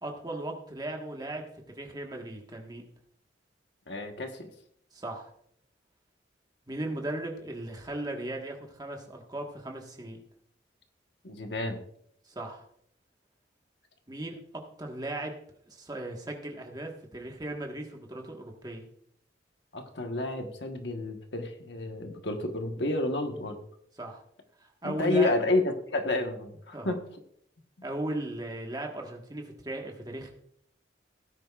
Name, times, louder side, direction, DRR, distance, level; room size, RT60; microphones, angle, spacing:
voice 1, 0.0-1.4 1.7-2.8 4.9-5.3 6.7-10.2 12.3-12.6 14.1-15.3 15.7-18.9 24.0-24.2 24.6-25.3 26.7-27.0 27.8-30.3, right 1 dB, 20° right, 1 dB, 1.5 m, -37 dB
voice 2, 3.9-4.5 11.2-11.8 19.7-23.6 24.8-27.0, left 2 dB, 70° left, 4 dB, 1.3 m, -30 dB
17.0 x 9.9 x 2.4 m, 0.69 s
head